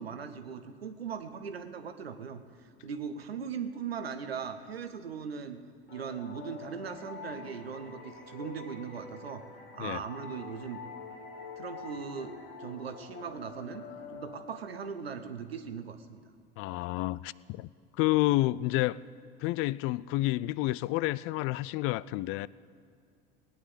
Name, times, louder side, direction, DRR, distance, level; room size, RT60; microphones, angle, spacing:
voice 1, 0.0-5.6 5.9-9.4 9.7-10.8 11.6-13.8 14.1-16.2, right 6 dB, 90° right, 0.9 m, -39 dB
sound 1, 5.9-15.3, left 4 dB, 75° left, 2.0 m, -46 dB
voice 2, 16.6-17.7 18.0-19.0 19.4-22.5, left 18 dB, 45° left, 0.4 m, -29 dB
18.0 x 9.2 x 8.1 m
hypercardioid pair, 70°, 29 cm